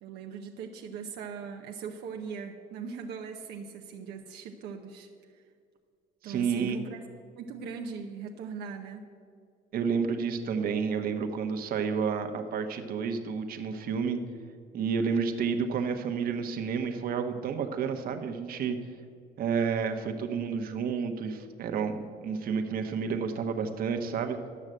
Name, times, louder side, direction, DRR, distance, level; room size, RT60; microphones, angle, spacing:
voice 1, 0.0-5.4 6.2-7.0 7.4-9.1, right 6 dB, 80° right, 3 dB, 0.8 m, -40 dB
voice 2, 6.2-6.8 9.7-14.2 14.7-18.8 19.4-21.9 22.2-24.4, right 6 dB, 60° right, 6 dB, 1.0 m, -30 dB
11.0 x 6.4 x 7.6 m, 2.1 s
cardioid pair, 110°, 17 cm